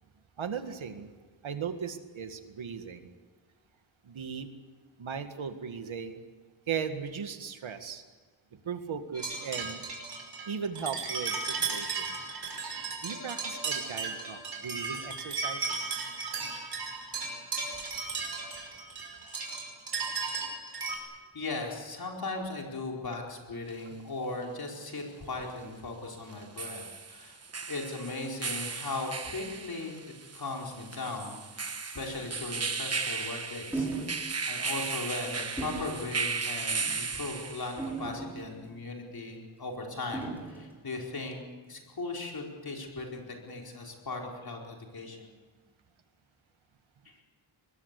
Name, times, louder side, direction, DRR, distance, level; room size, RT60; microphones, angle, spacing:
voice 1, 0.4-1.1 1.4-3.1 4.0-4.5 5.0-6.2 6.7-8.0 8.6-9.8 10.5-12.2 13.0-16.0, right 6 dB, 80° right, 8 dB, 2.0 m, -37 dB
sound 1, 9.1-21.0, right 4 dB, 55° right, 5.4 m, -35 dB
voice 2, 21.3-26.8 27.1-27.4 27.7-30.0 30.3-33.9 34.5-45.4, left 3 dB, 50° left, 0 dB, 4.8 m, -38 dB
sound 2, 23.7-23.8 26.3-37.9, right 4 dB, 30° right, 1.2 m, -36 dB
sound 3, 33.7-34.2 34.6-34.8 35.6-35.9 36.7-37.0 37.8-38.7 40.1-40.6, right 3 dB, 5° right, 6.0 m, -36 dB
24.0 x 20.5 x 8.4 m, 1.4 s
wide cardioid pair, 160°, 47 cm